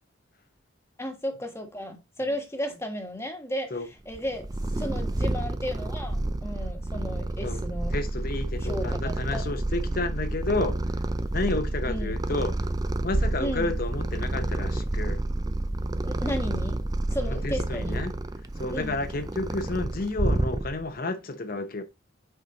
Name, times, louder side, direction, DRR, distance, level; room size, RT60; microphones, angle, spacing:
voice 1, 1.0-3.8 4.1-4.4 4.7-7.9 8.6-9.4 9.8-10.0 11.8-12.2 13.4-13.7 16.0-16.8 17.1-18.0 18.7-19.0, equal, 15° left, 1.3 m, -34 dB
Purr, 4.1-21.0, right 2 dB, 20° right, 0.5 m, -29 dB
voice 2, 7.9-10.8 11.3-12.7 13.0-15.2 17.3-18.1 18.6-21.8, left 2 dB, 50° left, 0.8 m, -31 dB
6.8 x 4.9 x 3.8 m
head